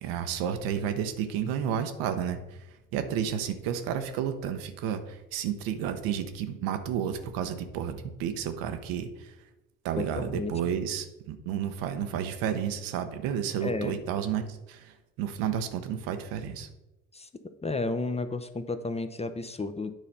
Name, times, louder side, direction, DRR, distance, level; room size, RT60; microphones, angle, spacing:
voice 1, 0.0-2.6 2.9-9.3 9.8-16.7, right 8 dB, 65° right, 9 dB, 0.9 m, -31 dB
voice 2, 10.0-10.5 13.6-14.0 17.1-17.3 17.6-19.9, left 3 dB, 15° left, 9 dB, 0.7 m, -32 dB
9.1 x 4.1 x 5.4 m, 0.99 s
hypercardioid pair, 50°, 37 cm